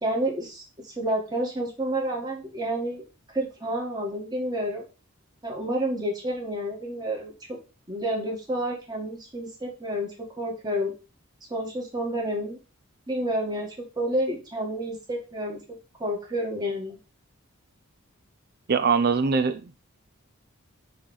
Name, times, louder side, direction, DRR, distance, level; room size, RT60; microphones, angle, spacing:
voice 1, 0.0-3.0 3.3-4.8 5.4-7.6 7.9-10.9 11.5-12.6 13.1-15.6 16.0-17.0, right 1 dB, 20° right, 1.8 m, -29 dB
voice 2, 18.7-19.8, right 5 dB, 45° right, 0.5 m, -22 dB
6.3 x 3.3 x 5.5 m
head